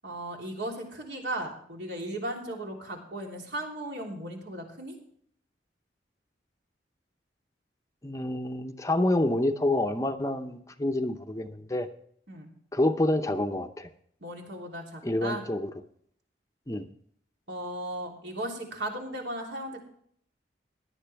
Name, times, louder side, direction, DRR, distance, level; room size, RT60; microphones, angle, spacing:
voice 1, 0.0-4.9 12.3-12.5 14.2-15.4 17.5-19.8, right 1 dB, 75° right, 0 dB, 3.4 m, -36 dB
voice 2, 8.0-11.9 12.7-13.9 15.0-15.7 16.7-16.9, left 1 dB, 15° left, 7 dB, 0.6 m, -27 dB
17.0 x 11.0 x 3.4 m, 0.64 s
head